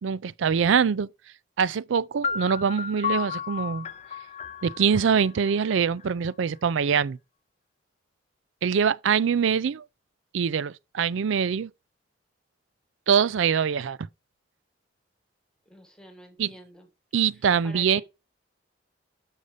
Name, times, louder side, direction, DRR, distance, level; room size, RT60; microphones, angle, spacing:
voice 1, 0.0-1.1 1.6-3.9 4.6-7.2 8.6-9.8 10.3-11.7 13.1-14.0 16.4-16.5 17.1-18.0, right 7 dB, 75° right, 0.4 m, -24 dB
sound 1, 2.2-6.1, left 7 dB, 35° left, 0.4 m, -33 dB
voice 2, 15.6-16.9 17.6-18.0, equal, 5° left, 1.5 m, -47 dB
6.5 x 5.4 x 5.0 m
head